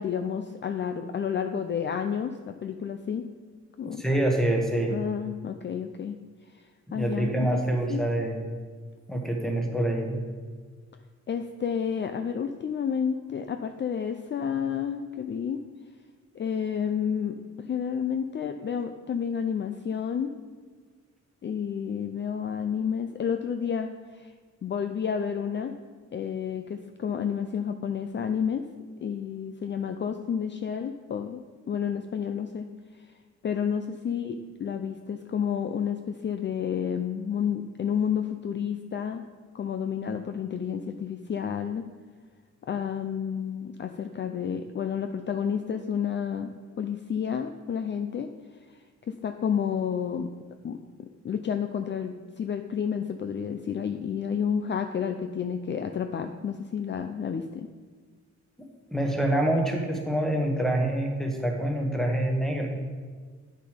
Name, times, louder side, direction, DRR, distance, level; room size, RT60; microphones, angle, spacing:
voice 1, 0.0-3.2 3.8-4.0 4.9-6.2 6.9-7.6 7.9-8.0 11.3-15.6 16.3-20.4 21.4-24.3 24.6-25.8 26.1-28.6 29.0-32.7 33.4-39.2 39.5-41.9 42.7-46.5 46.8-48.3 49.1-50.3 50.6-57.7, left 7 dB, 40° left, 7 dB, 0.5 m, -30 dB
voice 2, 3.8-4.9 6.9-8.5 9.1-10.2 58.9-62.7, right 1 dB, ahead, 2 dB, 1.4 m, -26 dB
9.7 x 6.6 x 5.1 m, 1.5 s
cardioid pair, 120°, 30 cm